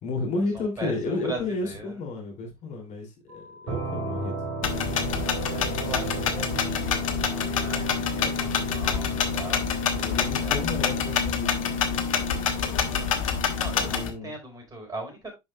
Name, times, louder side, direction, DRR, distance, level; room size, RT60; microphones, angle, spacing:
voice 1, 0.0-4.3 10.0-12.5 13.6-14.3, left 3 dB, 45° left, 3.0 m, -32 dB
voice 2, 0.5-2.0 5.5-10.7 11.0-11.2 13.6-15.3, right 2 dB, 20° right, 4.5 m, -40 dB
sound 1, 3.3-13.9, left 3 dB, 50° right, 5.0 m, -49 dB
sound 2, 3.7-13.2, right 5 dB, 65° right, 2.8 m, -36 dB
sound 3, 4.6-14.1, left 7 dB, 70° left, 1.3 m, -27 dB
10.5 x 5.3 x 2.4 m
figure-of-eight pair, 75°, 18 cm